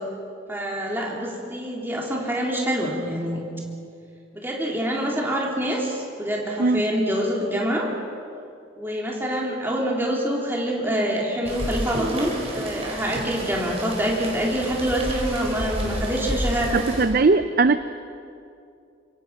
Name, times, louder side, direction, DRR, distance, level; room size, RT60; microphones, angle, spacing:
voice 1, 0.5-3.4 4.3-7.9 8.8-16.8, equal, 10° right, -3 dB, 3.6 m, -26 dB
Rain, 11.4-17.0, right 1 dB, 30° right, 5.2 m, -31 dB
voice 2, 16.7-17.8, right 3 dB, 50° right, 11 dB, 0.5 m, -19 dB
26.0 x 23.5 x 5.9 m, 2.5 s
head